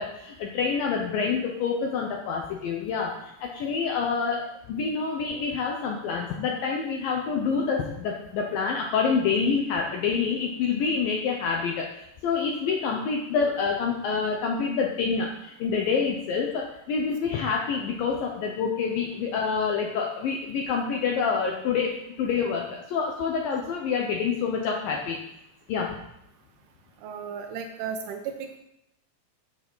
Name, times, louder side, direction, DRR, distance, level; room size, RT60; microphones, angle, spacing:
voice 1, 0.0-25.2 25.7-26.0, left 5 dB, 80° left, 0 dB, 2.1 m, -27 dB
voice 2, 27.0-28.6, right 6 dB, 80° right, 5 dB, 2.5 m, -35 dB
8.4 x 6.8 x 5.5 m, 0.82 s
omnidirectional pair, 5.1 m